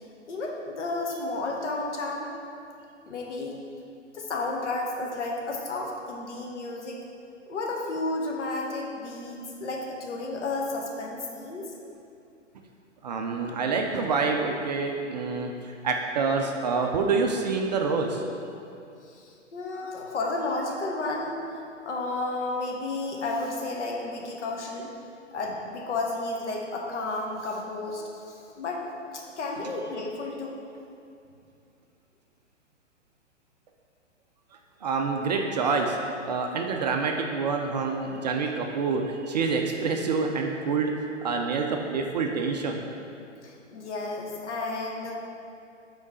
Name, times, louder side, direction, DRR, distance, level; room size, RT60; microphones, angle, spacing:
voice 1, 0.3-2.3 3.1-3.6 4.1-7.0 7.5-11.7 19.1-21.4 21.8-24.9 25.3-28.8 29.1-30.6 43.4-45.1, left 2 dB, 65° left, 0 dB, 1.1 m, -32 dB
voice 2, 13.0-18.2 19.8-19.9 34.8-36.0 36.2-40.9 41.2-42.8, right 4 dB, 35° right, 2 dB, 0.4 m, -27 dB
5.2 x 3.8 x 4.7 m, 2.5 s
figure-of-eight pair, 120°, 37 cm